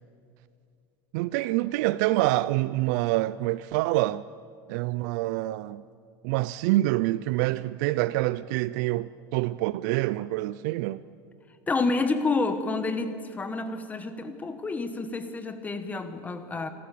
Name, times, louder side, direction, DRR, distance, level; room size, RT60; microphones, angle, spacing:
voice 1, 1.1-4.2 4.7-5.8 6.2-11.0, right 17 dB, 70° right, 16 dB, 0.4 m, -26 dB
voice 2, 11.7-16.7, left 3 dB, 15° left, 10 dB, 1.2 m, -29 dB
27.5 x 13.0 x 8.4 m, 2.4 s
supercardioid pair, 145°, 10 cm